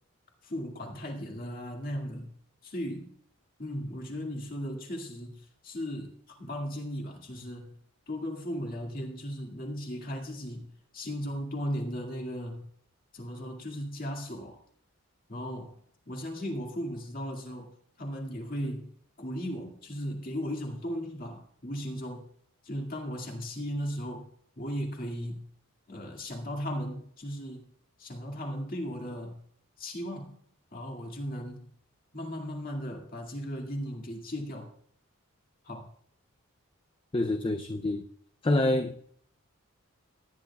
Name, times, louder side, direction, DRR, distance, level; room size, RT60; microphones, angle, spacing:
voice 1, 0.4-2.3 2.6-3.1 3.6-7.8 8.1-12.7 13.1-14.6 15.3-15.8 16.1-18.9 19.2-22.3 22.6-24.3 24.6-25.4 25.9-27.7 28.0-29.4 29.8-30.4 30.7-31.7 32.1-34.7 35.6-35.9, equal, 40° left, 2.1 m, -36 dB
voice 2, 37.1-38.0 38.4-39.0, left 1 dB, 25° left, 0.4 m, -27 dB
18.0 x 10.5 x 2.3 m
head